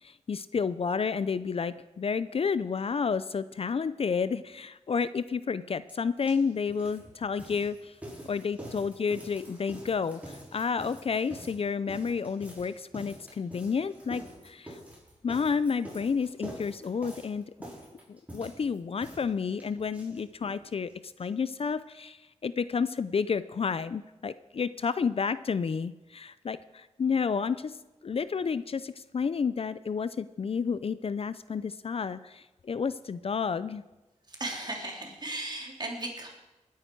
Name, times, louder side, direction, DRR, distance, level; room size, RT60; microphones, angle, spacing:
voice 1, 0.0-7.9 8.2-14.8 15.2-17.5 18.1-20.9 21.2-27.8 28.0-33.8, left 5 dB, 50° left, 15 dB, 0.5 m, -30 dB
sound 1, 5.9-6.0 6.2-20.6 20.9-21.0 21.2-21.3 21.6-21.7, equal, 10° right, 5.6 m, -46 dB
voice 2, 34.3-36.3, right 2 dB, 35° right, 0 dB, 3.2 m, -36 dB
20.0 x 9.5 x 4.6 m, 1.1 s
cardioid pair, 70°, 12 cm